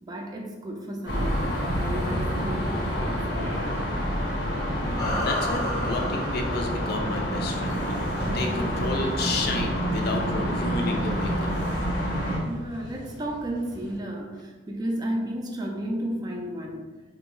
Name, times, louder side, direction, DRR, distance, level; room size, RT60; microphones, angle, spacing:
voice 1, 0.0-3.6 12.4-16.8, right 1 dB, 20° right, 0 dB, 0.4 m, -33 dB
sound 1, 1.1-12.4, equal, 85° left, 0.8 m, -28 dB
voice 2, 4.8-7.9 8.2-11.5, left 2 dB, 60° left, 3 dB, 0.4 m, -31 dB
sound 2, 5.0-7.7, left 1 dB, 20° left, 0.6 m, -33 dB
sound 3, 7.6-14.0, right 1 dB, 85° right, 0.5 m, -44 dB
3.4 x 2.2 x 3.0 m, 1.3 s
head